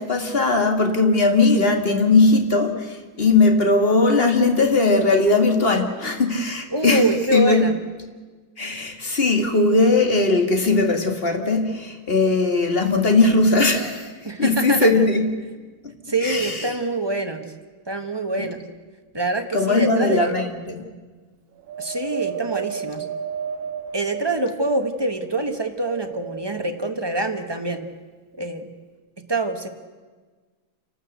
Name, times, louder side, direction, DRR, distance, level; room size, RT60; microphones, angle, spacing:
voice 1, 0.0-7.7 8.6-14.1 14.4-15.3 16.2-16.8 18.4-18.5 19.5-20.8, left 3 dB, 30° left, 4 dB, 2.1 m, -19 dB
voice 2, 6.7-7.8 14.2-14.9 16.1-17.4 17.9-18.6 19.1-20.3 21.8-23.1 23.9-27.8 28.4-28.7 29.3-29.7, right 2 dB, 15° right, 6 dB, 0.9 m, -25 dB
Wind, 21.7-25.2 25.8-26.8 27.6-27.7, right 8 dB, 75° right, 1.8 m, -32 dB
28.5 x 12.5 x 8.1 m, 1.4 s
omnidirectional pair, 2.2 m